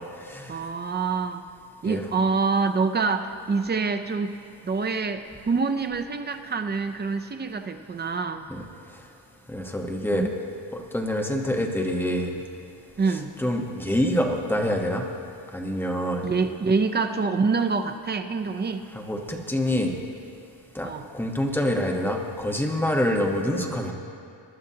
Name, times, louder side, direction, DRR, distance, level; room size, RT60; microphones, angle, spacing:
voice 1, 0.5-1.4 1.8-4.4 4.6-8.5 10.1-10.3 13.0-13.3 16.2-18.8 20.8-21.1, right 4 dB, 25° right, 8 dB, 0.5 m, -26 dB
voice 2, 9.5-10.3 10.7-12.3 13.4-15.0 15.5-16.3 18.9-19.9 20.7-20.9 21.1-23.9, left 1 dB, 5° left, 0 dB, 1.1 m, -26 dB
22.0 x 11.5 x 2.8 m, 2.5 s
cardioid pair, 140°, 44 cm